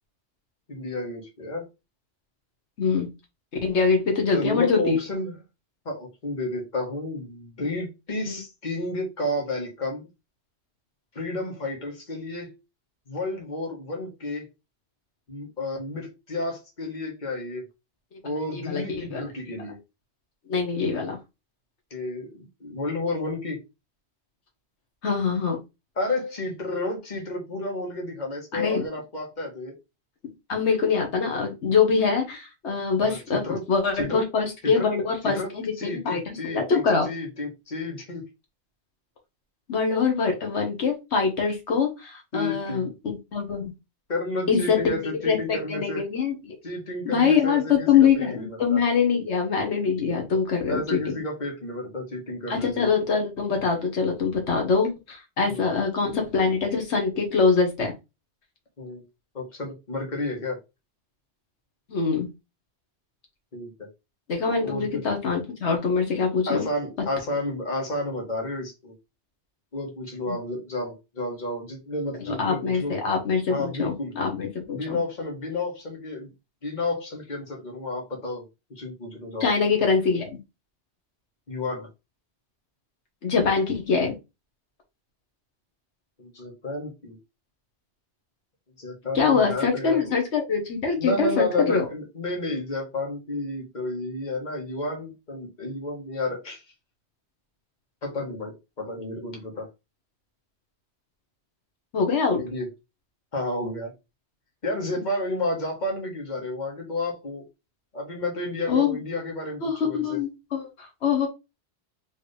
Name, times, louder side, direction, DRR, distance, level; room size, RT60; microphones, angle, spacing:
voice 1, 0.7-1.6 4.3-5.4 5.8-10.1 11.1-12.5 13.1-14.5 15.3-17.6 18.2-19.8 21.9-23.6 26.0-29.7 33.0-33.6 34.0-34.2 34.6-34.9 35.2-35.5 35.8-38.2 42.3-42.9 44.1-46.0 46.6-48.8 50.7-52.9 55.5-55.7 58.8-59.0 59.3-60.6 63.5-63.9 64.6-65.0 66.5-68.9 69.7-73.0 73.5-74.1 74.7-76.3 76.6-78.4 78.7-79.5 81.5-81.9 86.2-87.2 88.8-90.1 91.0-96.6 98.0-99.7 102.4-102.7 103.3-103.9 104.6-107.4 107.9-110.2, left 2 dB, 45° left, 0 dB, 1.6 m, -31 dB
voice 2, 2.8-3.1 3.6-5.0 8.3-8.4 18.5-19.3 20.5-21.2 25.0-25.6 28.5-28.8 30.5-33.4 33.7-37.1 39.7-43.7 44.5-45.0 45.2-46.5 47.0-51.2 52.5-57.9 61.9-62.3 64.3-66.6 70.3-70.4 72.3-75.0 79.4-80.4 83.2-84.1 89.1-91.9 101.9-102.4 105.0-105.1 108.7-109.0 109.6-111.3, left 5 dB, 85° left, 2 dB, 1.5 m, -24 dB
4.4 x 3.1 x 3.3 m, 0.24 s
omnidirectional pair, 1.1 m